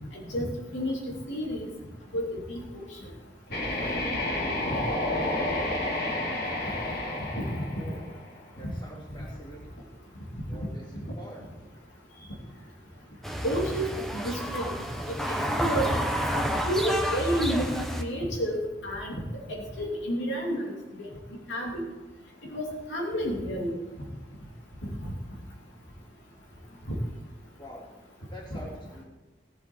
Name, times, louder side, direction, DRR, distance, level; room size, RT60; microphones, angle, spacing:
voice 1, 0.3-0.9 1.3-1.7 2.1-2.8 7.4-7.5 13.4-13.9 14.2-14.7 15.6-15.8 16.3-18.6 18.8-19.2 19.8-20.6 21.0-21.1 21.5-21.8 22.5-23.8, equal, 80° left, -2 dB, 2.8 m, -30 dB
sound 1, 3.5-8.4, left 1 dB, 60° left, 3.4 m, -30 dB
voice 2, 7.8-8.1 8.6-9.8 10.5-11.5 27.6-27.9 28.3-29.0, equal, 25° left, -4 dB, 3.3 m, -45 dB
sound 2, 13.2-18.0, equal, ahead, 1.0 m, -30 dB
17.5 x 7.9 x 4.5 m, 1.1 s
head